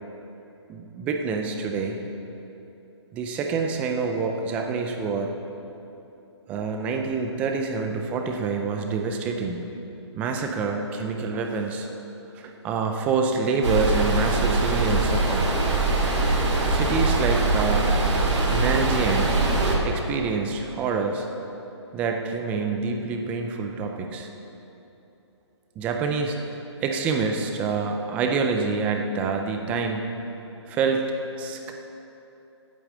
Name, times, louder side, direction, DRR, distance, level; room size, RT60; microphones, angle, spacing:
voice 1, 0.7-2.0 3.1-5.3 6.5-9.6 10.2-11.9 12.3-15.5 16.7-18.0 18.5-19.4 19.8-21.3 21.9-24.3 25.8-30.1 30.7-31.1 31.4-31.7, right 4 dB, 10° right, 3 dB, 0.4 m, -27 dB
sound 1, 13.6-19.8, right 2 dB, 85° right, 2.4 m, -22 dB
8.7 x 8.5 x 7.3 m, 3.0 s
hypercardioid pair, 160°, 15 cm